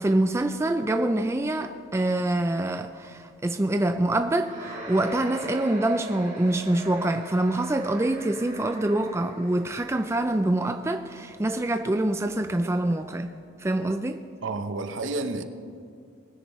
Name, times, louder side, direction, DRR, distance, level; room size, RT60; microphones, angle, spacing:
voice 1, 0.0-13.3 13.6-14.2, right 1 dB, 15° right, 0.3 m, -25 dB
sound 1, 4.4-9.8, right 1 dB, 40° right, 3.1 m, -40 dB
voice 2, 14.4-15.4, right 3 dB, 70° right, 0.8 m, -30 dB
20.0 x 9.9 x 3.1 m
head